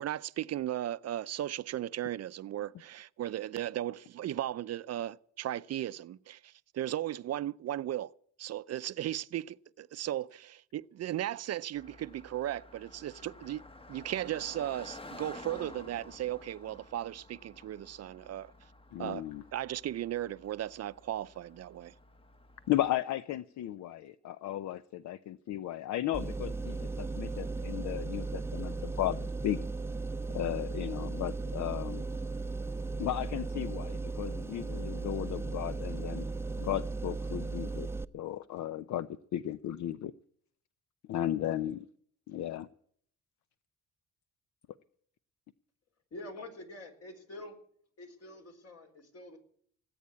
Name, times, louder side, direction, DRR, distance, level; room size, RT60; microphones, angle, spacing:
voice 1, 0.0-8.1 8.4-13.6 13.9-18.5 19.0-19.2 19.5-21.9, right 12 dB, 55° right, 0.5 m, -36 dB
Car passing by, 11.7-22.9, left 2 dB, 20° left, 1.0 m, -52 dB
voice 2, 18.9-19.4 22.7-29.6 30.3-32.0 33.0-36.3 36.6-37.9 38.1-40.1 41.1-41.9 42.3-42.7, left 13 dB, 70° left, 0.6 m, -35 dB
sound 1, 26.1-38.0, right 3 dB, 10° right, 0.6 m, -36 dB
voice 3, 46.1-47.5 48.0-49.4, left 1 dB, 50° left, 4.3 m, -46 dB
18.5 x 8.7 x 8.4 m
cardioid pair, 90°, 30 cm